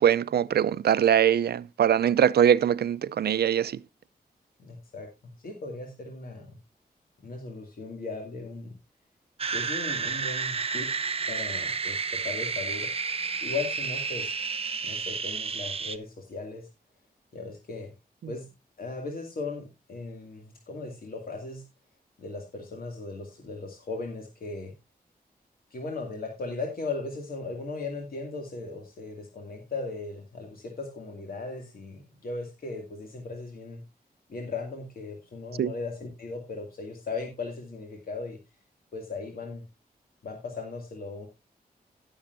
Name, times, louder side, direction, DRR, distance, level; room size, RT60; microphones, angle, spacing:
voice 1, 0.0-3.8 35.6-35.7, right 9 dB, 80° right, 0.5 m, -22 dB
voice 2, 4.6-5.1 5.4-6.6 7.2-8.7 9.5-10.9 11.3-13.1 13.4-14.3 14.8-16.7 17.3-17.9 18.3-18.5 18.8-21.6 22.2-24.7 25.7-33.8 34.3-38.4 38.9-39.6 40.2-41.3, left 3 dB, 65° left, 2.3 m, -37 dB
sound 1, 9.4-16.0, right 5 dB, 35° right, 0.8 m, -31 dB
17.5 x 7.1 x 2.6 m
wide cardioid pair, 120°, 16 cm